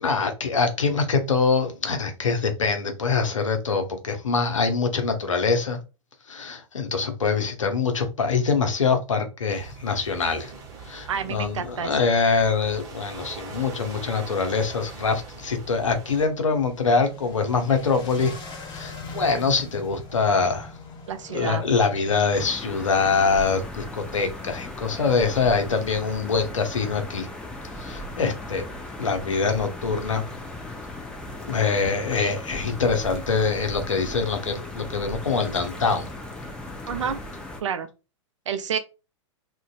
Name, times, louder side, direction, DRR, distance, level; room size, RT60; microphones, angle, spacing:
voice 1, 0.0-5.8 6.3-10.5 10.9-18.3 18.7-20.7 21.3-27.3 27.8-28.6 29.0-30.2 31.4-36.1, left 4 dB, 80° left, 0.6 m, -24 dB
sound 1, 9.5-16.3, right 5 dB, 20° right, 0.9 m, -42 dB
voice 2, 11.1-11.9 21.1-21.6 36.9-37.2 37.6-37.9 38.5-38.8, right 7 dB, 70° right, 0.4 m, -29 dB
sound 2, 14.6-22.4, left 3 dB, 30° left, 0.7 m, -42 dB
sound 3, 22.3-37.6, left 1 dB, 5° left, 0.3 m, -37 dB
2.5 x 2.2 x 2.3 m
figure-of-eight pair, 100°, 16 cm